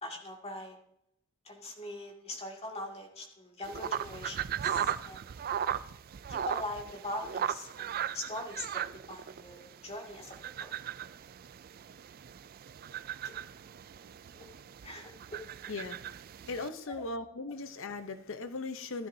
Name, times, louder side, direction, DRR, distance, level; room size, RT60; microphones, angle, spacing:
voice 1, 0.0-0.8 1.4-5.3 6.3-10.7 13.2-13.3 14.3-14.5 14.8-15.4, left 1 dB, 30° left, -1 dB, 2.2 m, -42 dB
sound 1, 3.6-16.7, right 9 dB, 45° right, 0.3 m, -38 dB
voice 2, 16.5-19.1, left 3 dB, 65° left, 9 dB, 0.8 m, -38 dB
15.0 x 13.0 x 2.7 m, 0.76 s
head